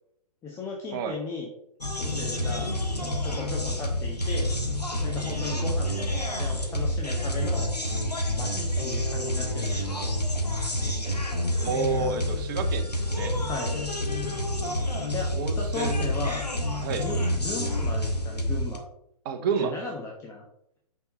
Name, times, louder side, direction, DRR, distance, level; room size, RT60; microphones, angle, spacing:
voice 1, 0.4-1.5 2.0-2.7 3.0-4.5 5.0-7.7 8.4-10.0 13.4-13.8 15.1-16.4 17.0-18.8 19.6-20.4, left 3 dB, 15° left, -2 dB, 1.1 m, -36 dB
sound 1, 1.8-18.8, left 1 dB, 90° left, 1.6 m, -28 dB
voice 2, 11.6-13.4 15.3-16.0 16.8-17.1 19.2-19.7, right 5 dB, 35° right, 6 dB, 1.2 m, -29 dB
5.8 x 5.8 x 5.3 m, 0.75 s
figure-of-eight pair, 125°, 20 cm